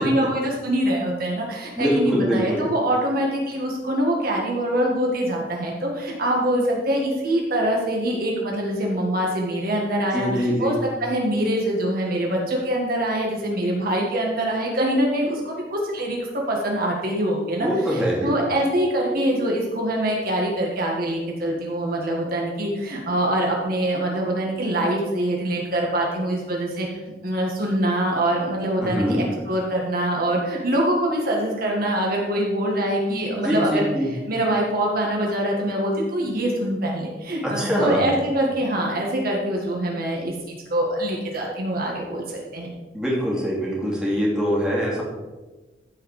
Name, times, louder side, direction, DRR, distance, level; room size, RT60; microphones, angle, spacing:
voice 1, 0.0-10.7 11.0-42.7, right 1 dB, 55° right, -1 dB, 1.7 m, -24 dB
voice 2, 1.7-2.7 10.1-10.7 17.6-18.3 28.8-29.2 33.3-34.1 37.4-38.1 42.9-45.0, equal, 5° right, -5 dB, 2.8 m, -23 dB
14.5 x 4.9 x 4.8 m, 1.2 s
head